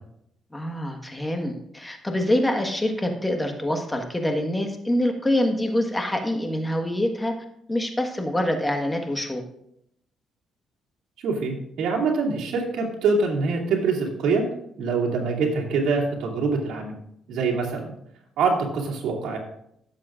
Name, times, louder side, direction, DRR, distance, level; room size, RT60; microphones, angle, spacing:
voice 1, 0.5-7.3 7.7-9.4, left 1 dB, 15° left, 4 dB, 1.4 m, -25 dB
voice 2, 11.2-14.5 14.8-16.9 17.3-17.9 18.4-19.4, right 4 dB, 80° right, -2 dB, 2.5 m, -24 dB
16.0 x 7.5 x 2.5 m, 0.75 s
cardioid pair, 90°, 0 cm